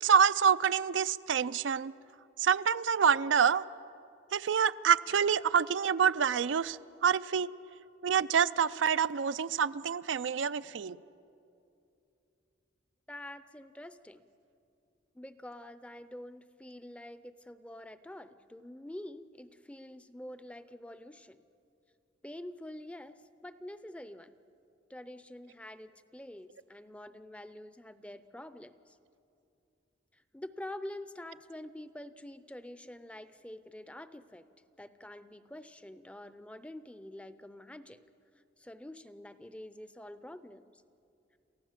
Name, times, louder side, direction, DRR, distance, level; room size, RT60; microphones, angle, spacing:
voice 1, 0.0-1.9 2.4-3.6 4.3-7.5 8.0-11.0, right 7 dB, 80° right, 15 dB, 0.4 m, -27 dB
voice 2, 13.1-14.2 15.1-21.4 22.2-23.1 23.4-24.3 24.9-28.7 30.3-34.4 34.8-38.0 38.6-40.7, left 1 dB, 5° left, 13 dB, 0.5 m, -46 dB
28.5 x 15.0 x 7.4 m, 2.6 s
head